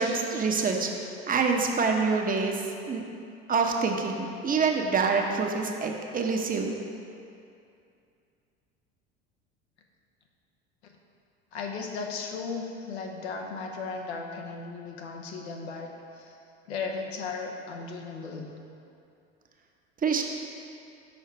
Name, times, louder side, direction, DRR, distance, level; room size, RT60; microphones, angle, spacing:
voice 1, 0.0-2.6 2.9-3.0 3.5-6.7 20.0-20.2, right 4 dB, 25° right, 2 dB, 0.9 m, -26 dB
voice 2, 11.5-16.3 16.7-18.5, left 4 dB, 75° left, 1 dB, 1.0 m, -36 dB
6.6 x 5.6 x 4.6 m, 2.6 s
hypercardioid pair, 70°, 33 cm